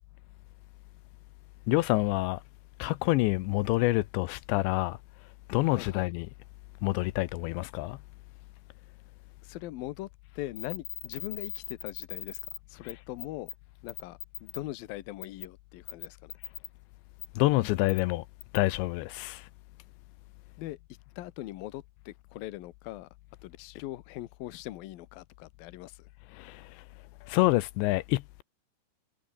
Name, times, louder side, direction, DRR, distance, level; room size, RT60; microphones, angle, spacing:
voice 1, 1.7-2.4 2.8-5.0 5.5-6.3 6.8-8.0 12.8-12.9 17.4-18.2 18.5-19.4 26.3-26.6 27.3-28.4, left 19 dB, 90° left, 3.0 m, -27 dB
voice 2, 5.6-6.1 9.4-10.1 10.4-12.4 12.7-13.5 13.8-16.3 20.6-20.8 21.2-23.1 23.4-26.1, left 16 dB, 70° left, 2.5 m, -41 dB
sound 1, 10.6-12.6 12.9-13.0 13.2-13.5 13.9-14.6 15.2-15.4 15.9-16.7 17.2-17.3 17.9-18.0 18.4-18.6, left 10 dB, 50° left, 2.6 m, -39 dB
omnidirectional pair, 5.2 m